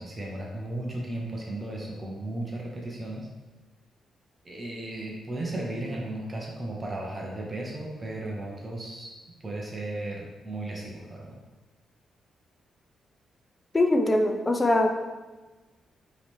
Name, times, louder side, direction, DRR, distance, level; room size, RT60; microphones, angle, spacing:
voice 1, 0.0-3.3 4.4-9.1 9.4-11.4, right 1 dB, 25° right, -2 dB, 0.8 m, -35 dB
voice 2, 13.7-14.9, left 1 dB, 20° left, 4 dB, 0.4 m, -22 dB
4.6 x 3.1 x 3.5 m, 1.2 s
cardioid pair, 130°, 0 cm